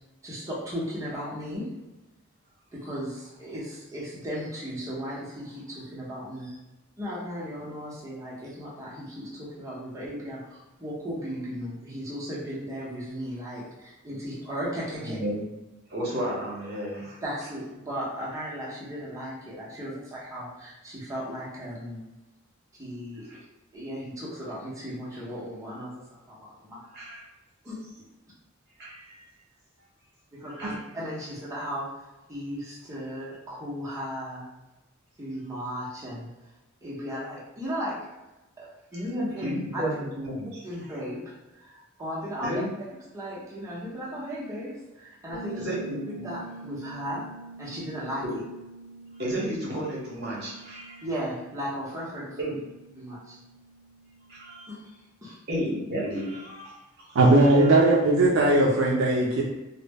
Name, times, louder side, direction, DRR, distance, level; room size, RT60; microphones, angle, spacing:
voice 1, 0.2-1.7 2.7-6.6 7.0-15.2 17.2-22.0 22.8-23.4 23.7-26.8 27.6-27.9 30.3-34.4 35.2-36.3 36.8-38.0 38.6-39.8 40.6-42.6 43.1-45.8 46.2-47.2 47.6-48.2 51.0-52.6 52.9-53.4 54.7-54.8 55.2-55.4, equal, 15° right, -7 dB, 0.7 m, -36 dB
voice 2, 15.0-15.5 15.9-17.2 23.3-23.4 26.9-27.2 28.8-29.2 30.5-30.8 38.9-39.0 39.4-40.5 42.4-42.6 45.6-46.3 48.2-48.3 49.2-51.0 52.4-52.5 54.3-54.7 55.5-56.8 57.6-57.7, equal, 55° right, -4 dB, 0.8 m, -32 dB
Bass guitar, 45.3-55.0, right 3 dB, 40° left, 1.0 m, -46 dB
voice 3, 57.1-59.4, right 2 dB, 75° right, -3 dB, 0.4 m, -19 dB
2.0 x 2.0 x 3.3 m, 1.0 s
head